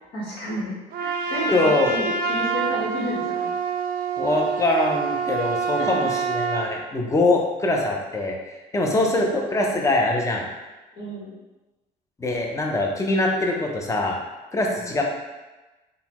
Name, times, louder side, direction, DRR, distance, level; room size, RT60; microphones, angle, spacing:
voice 1, 0.1-3.5 5.7-6.0 8.8-9.3 11.0-11.3 14.7-15.0, equal, 80° left, -5 dB, 1.2 m, -32 dB
Trumpet, 0.9-6.7, right 5 dB, 60° right, 0.4 m, -26 dB
voice 2, 1.5-1.9 4.2-10.5 12.2-14.2 14.5-15.0, left 2 dB, 20° left, 0 dB, 0.5 m, -23 dB
3.8 x 2.1 x 2.9 m, 1.1 s
cardioid pair, 110°, 17 cm